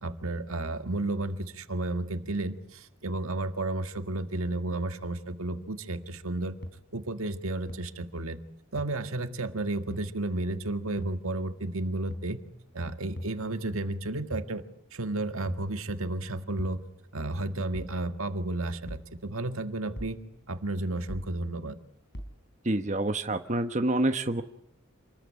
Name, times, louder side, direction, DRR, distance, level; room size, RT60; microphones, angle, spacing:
voice 1, 0.0-6.6 6.9-8.4 8.7-12.4 12.7-14.6 14.9-16.8 17.1-20.2 20.5-21.8, right 2 dB, 85° right, 8 dB, 1.8 m, -32 dB
sound 1, 6.6-6.7 7.7-7.8 8.8-8.9 9.9-10.1 11.0-11.2 12.1-12.3 13.2-13.4 14.3-14.5 15.5-15.7 16.6-16.8 17.7-18.0 18.9-19.1 20.0-20.2 21.1-21.3 22.1-22.4, equal, 55° left, 3.9 m, -39 dB
voice 2, 22.6-24.4, right 2 dB, 35° right, 7 dB, 1.2 m, -27 dB
28.0 x 21.0 x 8.7 m, 0.74 s
head